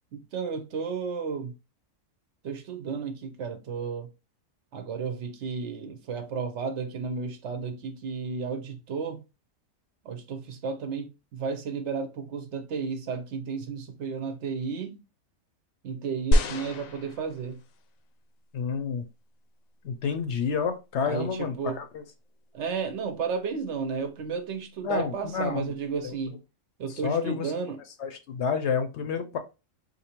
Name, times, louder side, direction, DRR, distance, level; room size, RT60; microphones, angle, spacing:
voice 1, 0.1-1.5 2.4-4.1 4.7-9.2 10.0-15.0 15.8-17.6 21.1-21.8 22.5-26.4 26.8-27.8, right 5 dB, 65° right, 0.8 m, -33 dB
sound 1, 16.3-17.8 18.6-18.7, equal, 90° left, 1.1 m, -26 dB
voice 2, 18.5-19.0 19.8-22.0 24.8-25.7 26.0-26.1 26.9-27.5 28.0-29.4, left 6 dB, 65° left, 0.8 m, -29 dB
4.3 x 2.6 x 2.9 m
omnidirectional pair, 1.4 m